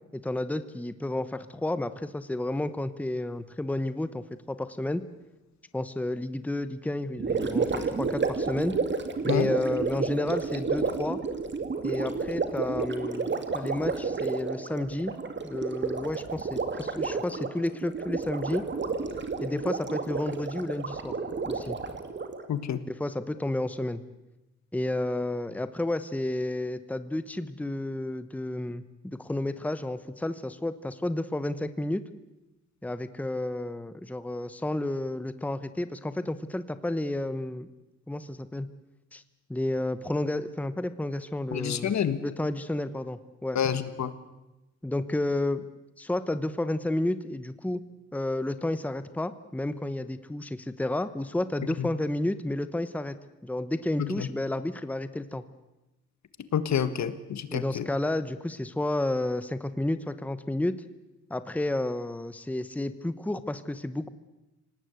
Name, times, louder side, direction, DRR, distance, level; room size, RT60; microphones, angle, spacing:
voice 1, 0.1-5.0 5.7-8.8 9.2-11.2 11.8-15.1 15.4-18.6 19.4-21.2 21.4-21.8 22.9-24.0 24.7-32.0 32.8-37.7 38.1-38.7 39.1-39.2 39.5-41.9 42.2-43.6 44.8-45.6 46.0-47.8 48.1-53.1 53.4-55.4 57.5-60.8 61.3-64.1, left 1 dB, 5° left, 12 dB, 0.9 m, -31 dB
Gurgling, 7.2-22.5, right 4 dB, 40° right, 2.4 m, -31 dB
voice 2, 22.5-22.8 41.5-42.2 43.5-44.1 51.8-51.9 54.0-54.3 56.5-57.9, left 8 dB, 65° left, 13 dB, 1.6 m, -28 dB
26.5 x 18.5 x 8.2 m, 1.0 s
cardioid pair, 125°, 30 cm